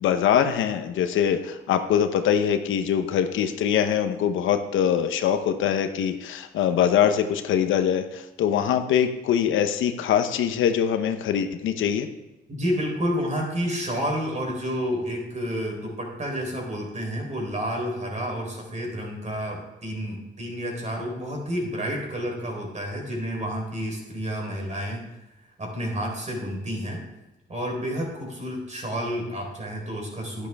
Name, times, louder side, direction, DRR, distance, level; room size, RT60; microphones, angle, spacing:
voice 1, 0.0-12.1, left 9 dB, 80° left, 8 dB, 0.8 m, -23 dB
voice 2, 12.5-25.0 25.6-27.0 27.5-30.5, equal, 35° right, 0 dB, 3.7 m, -30 dB
10.5 x 10.5 x 3.5 m, 0.98 s
cardioid pair, 90°, 20 cm